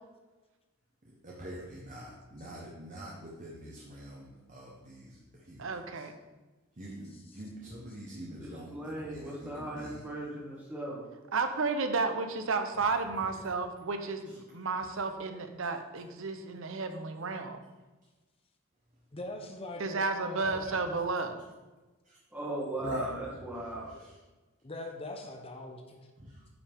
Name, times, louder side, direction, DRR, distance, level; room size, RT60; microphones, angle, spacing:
voice 1, 1.2-6.1 6.7-10.1 13.3-13.4 14.3-14.4 20.7-20.8 22.0-22.2 22.8-23.1 23.7-24.2 26.2-26.5, right 1 dB, 35° right, -3 dB, 1.1 m, -46 dB
voice 2, 5.6-6.1 11.3-17.6 19.8-21.4, right 4 dB, 65° right, 7 dB, 0.8 m, -32 dB
voice 3, 8.4-11.0 22.3-23.9, right 1 dB, 10° right, -5 dB, 1.9 m, -37 dB
voice 4, 19.1-20.8 23.9-24.0 24.6-26.0, left 2 dB, 25° left, 3 dB, 0.8 m, -42 dB
9.3 x 5.7 x 3.5 m, 1.2 s
head